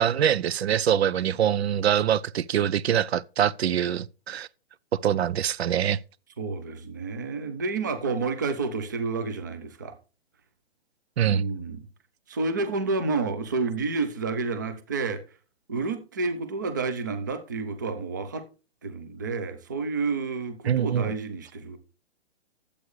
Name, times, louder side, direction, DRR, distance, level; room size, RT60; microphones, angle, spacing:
voice 1, 0.0-4.5 4.9-6.0 11.2-11.4 20.7-21.1, right 9 dB, 75° right, 0.5 m, -24 dB
voice 2, 6.4-10.0 11.3-11.9 12.3-15.2 15.7-18.5 18.8-21.8, right 4 dB, 20° right, 0.5 m, -30 dB
11.5 x 8.2 x 3.1 m
hypercardioid pair, 170°, 32 cm